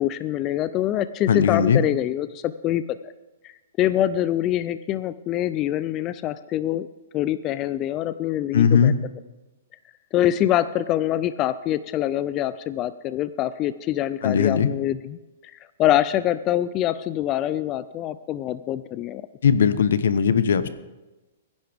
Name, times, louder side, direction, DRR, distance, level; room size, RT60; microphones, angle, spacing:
voice 1, 0.0-3.0 3.4-6.9 7.1-8.9 10.1-15.2 15.4-19.2, left 12 dB, 25° left, 14 dB, 0.3 m, -25 dB
voice 2, 1.3-1.8 8.5-8.9 14.2-14.7 19.4-20.7, left 7 dB, 80° left, 13 dB, 0.9 m, -19 dB
22.0 x 10.5 x 3.5 m, 1.1 s
hypercardioid pair, 160°, 0 cm